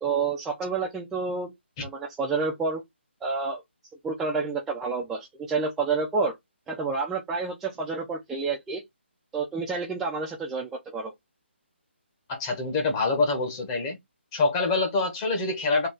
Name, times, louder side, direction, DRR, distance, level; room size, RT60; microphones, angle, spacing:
voice 1, 0.0-1.5 1.8-2.8 3.2-3.6 4.0-6.3 6.7-8.8 9.3-11.1, right 4 dB, 5° right, 0.4 m, -29 dB
voice 2, 12.3-14.0 14.3-15.9, left 3 dB, 20° left, 0.9 m, -25 dB
3.8 x 2.3 x 3.8 m
hypercardioid pair, 165°, 7 cm